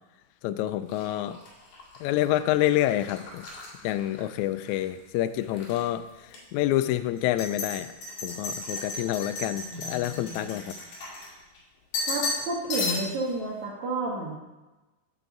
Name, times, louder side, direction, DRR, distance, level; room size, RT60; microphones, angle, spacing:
voice 1, 0.4-1.4 2.0-3.5 3.8-7.9 8.2-10.6, left 13 dB, 85° left, 11 dB, 1.6 m, -27 dB
sound 1, 0.9-4.8 5.2-5.8 6.3-6.4 7.2-11.6 11.9-12.4 12.7-13.3, left 3 dB, 60° left, 3.2 m, -35 dB
voice 2, 9.7-10.8 12.1-14.4, right 2 dB, 65° right, -3 dB, 2.7 m, -32 dB
14.0 x 5.9 x 3.9 m, 1.1 s
omnidirectional pair, 3.8 m